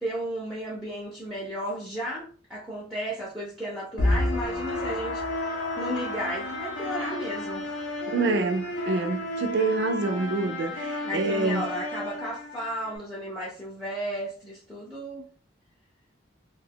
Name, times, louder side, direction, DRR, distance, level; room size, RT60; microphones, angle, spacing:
voice 1, 0.0-7.7 11.0-15.3, equal, ahead, 0.5 m, -34 dB
sound 1, 4.0-13.0, left 1 dB, 90° left, 0.6 m, -31 dB
voice 2, 8.1-11.7, right 3 dB, 65° right, 0.4 m, -27 dB
2.7 x 2.3 x 3.4 m
head